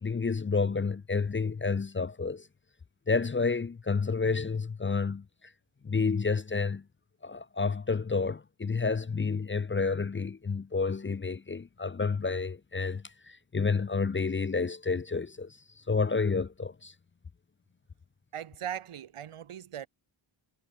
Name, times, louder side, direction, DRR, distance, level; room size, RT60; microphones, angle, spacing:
voice 1, 0.0-2.5 3.1-5.2 5.8-6.8 7.2-16.9, left 4 dB, 25° left, 0.6 m, -30 dB
voice 2, 18.3-19.9, right 10 dB, 85° right, 1.7 m, -39 dB
wide cardioid pair, 150°, 50 cm